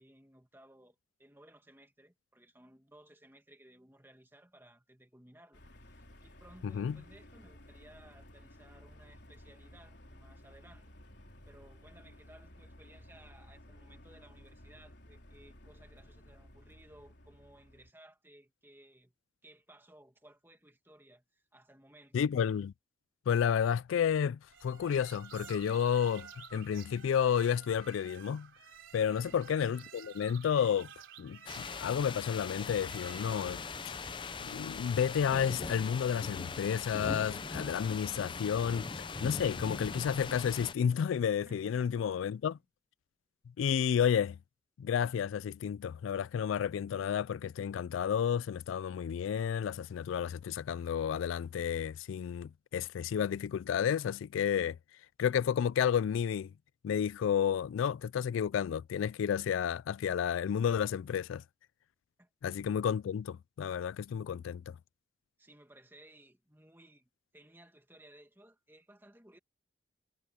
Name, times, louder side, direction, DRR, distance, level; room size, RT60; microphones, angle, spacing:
voice 1, 0.0-10.9 11.5-19.1 19.4-22.2 29.1-29.4 41.5-42.0 62.2-62.3 65.4-69.4, right 1 dB, 10° right, 2.1 m, -59 dB
sound 1, 5.5-17.9, left 1 dB, 60° left, 4.0 m, -55 dB
voice 2, 6.6-7.0 22.1-22.7 23.3-28.5 28.9-30.9 31.2-34.0 34.4-42.6 43.6-44.4 44.8-54.8 55.2-56.5 56.8-61.4 62.4-64.8, left 8 dB, 85° left, 0.3 m, -31 dB
sound 2, 24.5-33.7, right 7 dB, 90° right, 3.5 m, -52 dB
sound 3, 31.5-40.7, left 4 dB, 25° left, 0.5 m, -40 dB
head